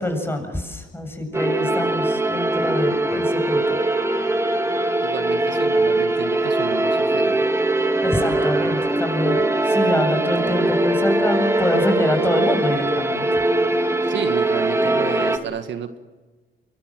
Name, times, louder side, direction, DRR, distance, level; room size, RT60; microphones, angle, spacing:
voice 1, 0.0-3.6 7.8-13.2, left 1 dB, 10° left, 6 dB, 7.4 m, -25 dB
sound 1, 1.3-15.4, right 2 dB, 15° right, 2.5 m, -21 dB
voice 2, 5.0-7.4 14.0-16.0, right 7 dB, 65° right, 8 dB, 1.8 m, -31 dB
26.0 x 23.5 x 7.7 m, 1.3 s
cardioid pair, 90°, 20 cm